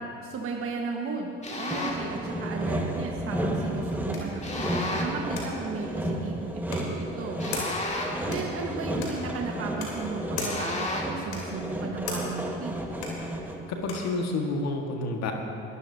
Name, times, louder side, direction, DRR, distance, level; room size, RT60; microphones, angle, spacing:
voice 1, 0.2-7.4 8.3-12.9, right 4 dB, 45° right, 0 dB, 1.4 m, -35 dB
sound 1, 1.4-2.1 4.4-5.3 7.4-8.4 10.4-11.3, left 2 dB, 20° left, 2.2 m, -33 dB
Sawing, 1.7-13.8, right 1 dB, 5° right, 1.6 m, -32 dB
sound 2, 3.5-14.2, left 3 dB, 85° left, 2.8 m, -41 dB
voice 2, 13.7-15.3, left 2 dB, 55° left, 2 dB, 1.7 m, -29 dB
22.0 x 11.5 x 2.8 m, 2.6 s
hypercardioid pair, 65°, 32 cm